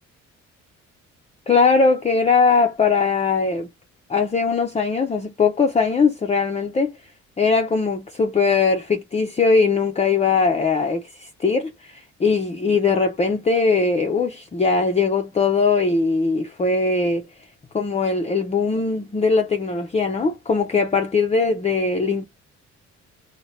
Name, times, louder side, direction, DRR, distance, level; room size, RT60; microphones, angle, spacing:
voice 1, 1.5-3.7 4.1-6.9 7.4-17.3 17.7-22.3, left 4 dB, 20° left, 0.5 m, -20 dB
2.7 x 2.2 x 3.1 m
cardioid pair, 90°, 30 cm